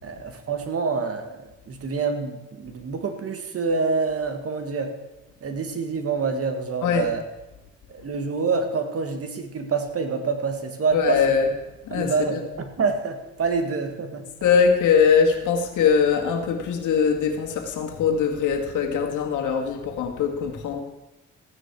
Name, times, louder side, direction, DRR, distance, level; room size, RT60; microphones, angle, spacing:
voice 1, 0.0-4.9 5.4-7.2 7.9-11.2 11.9-14.3, right 4 dB, 50° right, 6 dB, 1.9 m, -27 dB
voice 2, 10.9-11.5 11.8-12.3 14.4-20.8, left 6 dB, 80° left, 3 dB, 2.0 m, -21 dB
15.0 x 9.4 x 4.8 m, 1.0 s
cardioid pair, 90°, 30 cm